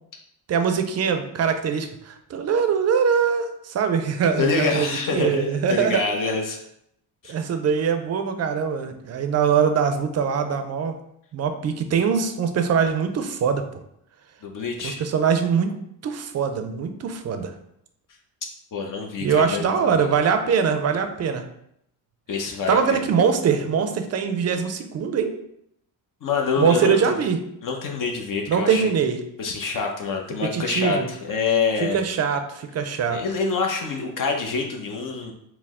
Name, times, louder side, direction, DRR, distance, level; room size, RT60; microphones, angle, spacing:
voice 1, 0.5-6.1 7.3-10.9 11.3-13.6 14.8-15.8 16.0-17.5 19.2-21.4 22.7-25.4 26.6-27.4 28.5-29.2 30.5-31.1 31.9-33.2, right 6 dB, 40° right, 8 dB, 0.5 m, -22 dB
voice 2, 4.4-6.6 7.2-7.4 14.4-15.0 18.7-20.1 22.3-23.0 26.2-27.1 27.6-28.9 29.4-32.0 33.1-35.3, left 4 dB, 50° left, 2 dB, 0.7 m, -26 dB
4.5 x 2.1 x 3.6 m, 0.75 s
cardioid pair, 105°, 41 cm